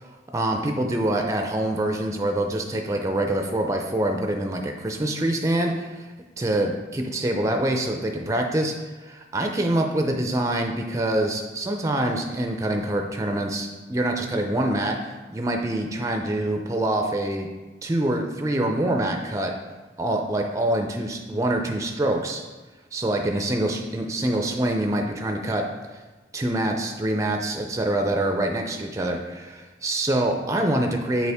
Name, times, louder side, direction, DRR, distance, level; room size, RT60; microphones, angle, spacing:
voice 1, 0.3-6.1 6.4-8.8 9.3-17.5 17.8-19.5 20.0-22.4 22.9-25.6 26.3-31.3, right 1 dB, 15° right, 3 dB, 0.4 m, -25 dB
6.8 x 4.3 x 3.5 m, 1.3 s
head